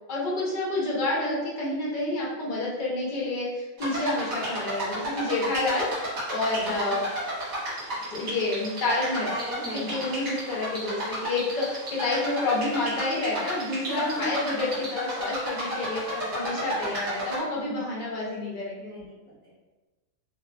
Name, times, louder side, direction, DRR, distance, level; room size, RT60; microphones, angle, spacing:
voice 1, 0.1-7.0 8.1-9.3 9.7-16.0 16.3-18.9, left 2 dB, 45° left, -5 dB, 0.6 m, -29 dB
sound 1, 3.8-17.4, right 1 dB, 60° right, 1.2 m, -33 dB
voice 2, 6.6-7.0 9.3-10.1 13.7-14.4 16.1-16.9 18.8-19.5, left 1 dB, 10° left, -14 dB, 0.8 m, -37 dB
2.5 x 2.3 x 2.4 m, 1.2 s
omnidirectional pair, 1.5 m